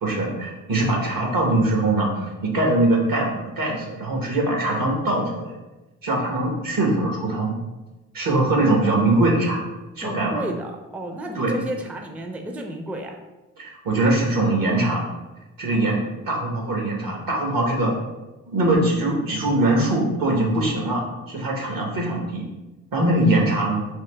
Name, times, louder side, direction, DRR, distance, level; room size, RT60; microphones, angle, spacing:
voice 1, 0.0-5.5 6.0-7.6 8.1-9.7 10.0-10.4 11.3-11.5 13.6-15.0 15.6-16.0 16.3-17.9 18.5-22.4 22.9-23.8, right 2 dB, 70° right, 0 dB, 1.1 m, -22 dB
voice 2, 10.0-13.2, right 1 dB, 5° right, 3 dB, 0.4 m, -32 dB
3.6 x 2.7 x 3.3 m, 1.1 s
supercardioid pair, 55°, 36 cm